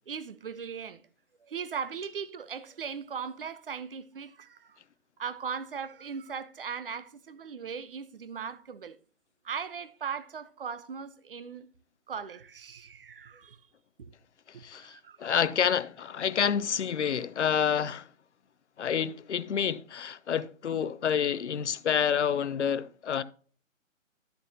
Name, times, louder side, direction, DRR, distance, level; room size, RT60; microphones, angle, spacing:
voice 1, 0.1-1.0 1.4-4.8 5.2-9.0 9.4-11.7 12.1-13.6 14.0-14.1 14.5-15.4, right 6 dB, 45° right, 0.8 m, -39 dB
voice 2, 14.6-18.1 18.8-23.2, left 8 dB, 60° left, 0.7 m, -28 dB
12.5 x 6.9 x 2.8 m
hypercardioid pair, 165°, 40 cm